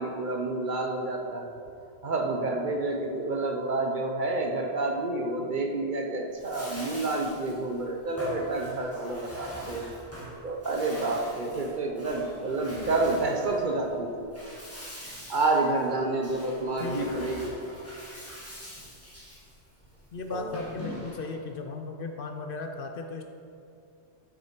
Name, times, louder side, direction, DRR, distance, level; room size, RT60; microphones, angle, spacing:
voice 1, 0.0-1.5 2.0-10.0 10.4-14.3 15.3-17.5 20.3-20.6, right 2 dB, 50° right, 2 dB, 0.9 m, -29 dB
Bathtub (filling or washing), 6.3-21.4, equal, 10° left, 1.7 m, -43 dB
voice 2, 16.8-17.2 20.1-23.2, left 3 dB, 60° left, 4 dB, 0.7 m, -36 dB
7.7 x 6.5 x 4.4 m, 2.5 s
omnidirectional pair, 1.2 m